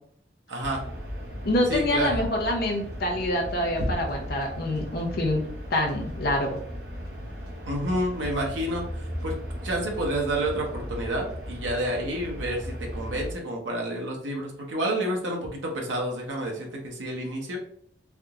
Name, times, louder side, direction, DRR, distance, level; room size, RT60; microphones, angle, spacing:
voice 1, 0.5-0.9 1.7-2.2 7.7-9.3 9.6-17.6, right 1 dB, 90° right, 0 dB, 0.8 m, -29 dB
sound 1, 0.6-13.3, equal, 60° right, 0.9 m, -36 dB
voice 2, 1.4-5.4 5.7-6.6, left 1 dB, 55° left, 1 dB, 0.6 m, -26 dB
3.4 x 2.8 x 2.4 m, 0.64 s
head